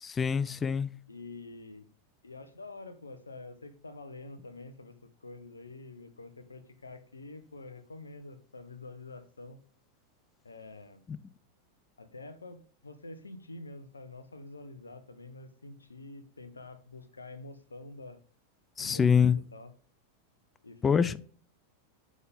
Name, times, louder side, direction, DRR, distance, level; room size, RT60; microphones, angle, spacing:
voice 1, 0.0-0.9 18.8-19.4 20.8-21.2, left 6 dB, 20° left, 0.3 m, -25 dB
voice 2, 1.1-1.9 2.2-5.0 5.2-9.6 10.4-11.0 12.0-18.2 18.8-19.7 20.6-21.2, left 2 dB, 75° left, 0.8 m, -47 dB
9.4 x 3.7 x 3.6 m
figure-of-eight pair, 90°, 0 cm